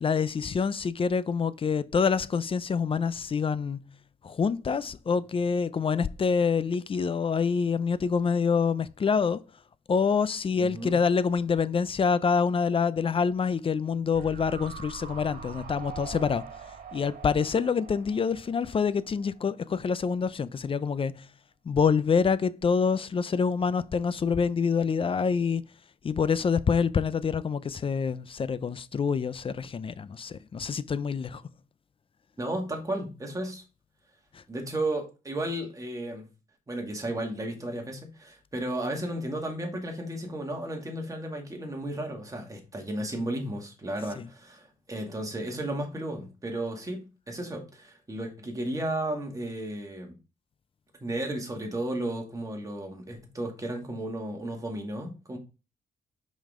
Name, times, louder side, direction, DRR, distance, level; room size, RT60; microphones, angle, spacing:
voice 1, 0.0-3.9 4.2-9.4 9.9-16.5 16.9-21.3 21.7-25.6 26.0-31.4 34.3-34.4 44.2-44.3, left 6 dB, 35° left, 0.5 m, -26 dB
voice 2, 10.5-11.0 32.4-33.6 34.5-36.3 36.7-50.2 51.0-55.4, right 1 dB, 20° right, 2.2 m, -34 dB
sound 1, 14.1-19.4 19.7-19.8, right 6 dB, 70° right, 1.7 m, -43 dB
5.5 x 5.2 x 3.7 m
cardioid pair, 95°, 15 cm